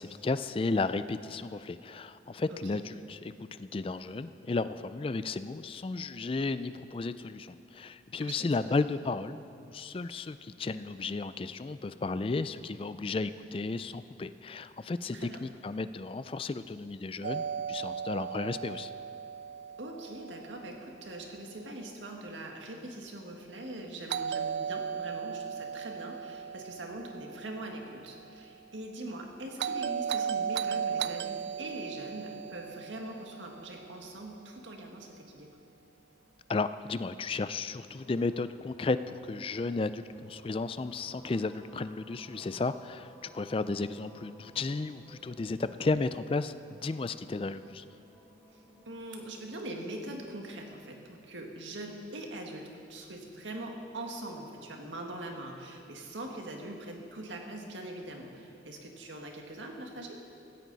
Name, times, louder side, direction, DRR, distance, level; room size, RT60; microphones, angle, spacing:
voice 1, 0.0-18.9 36.5-46.5 46.8-47.8, left 3 dB, 30° left, 13 dB, 0.3 m, -33 dB
voice 2, 2.5-2.8 8.2-8.5 15.1-15.4 19.8-35.5 48.5-60.2, right 1 dB, 85° right, 2 dB, 1.8 m, -42 dB
Doorbell, 17.2-21.2 24.1-28.3 29.6-34.0, right 7 dB, 65° right, 0.3 m, -36 dB
sound 1, 35.9-50.4, equal, 5° left, 1.9 m, -59 dB
16.5 x 14.0 x 4.1 m, 2.7 s
head